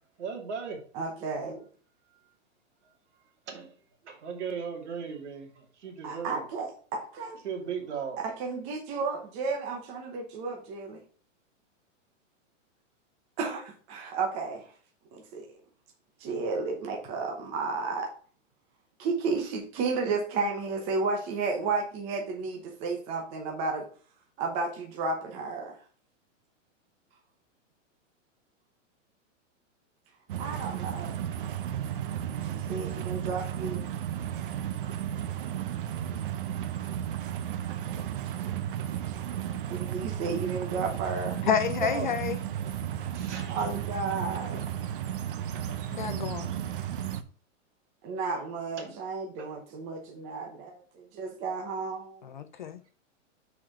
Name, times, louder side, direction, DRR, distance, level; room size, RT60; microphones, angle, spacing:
voice 1, 0.2-0.8 2.8-2.9 3.5-3.8 4.0-6.5 7.1-8.2 8.9-9.0 41.0-41.1 41.4-42.1 43.0-43.6 45.6-45.8 48.0-48.5 48.8-49.0 49.4-49.5, right 6 dB, 60° right, 2.5 m, -38 dB
voice 2, 0.9-1.6 6.0-7.4 8.2-11.0 13.4-14.7 15.1-15.5 16.2-18.1 19.0-23.9 24.4-25.7 30.4-31.1 32.4-33.8 39.7-41.5 43.3-44.6 48.0-52.3, right 4 dB, 15° right, 0.8 m, -33 dB
sound 1, 30.3-47.2, right 10 dB, 45° right, 0.6 m, -34 dB
voice 3, 41.4-42.4 45.9-46.5 52.2-52.8, left 7 dB, 40° left, 0.4 m, -29 dB
6.2 x 4.9 x 4.7 m
supercardioid pair, 175°, 38 cm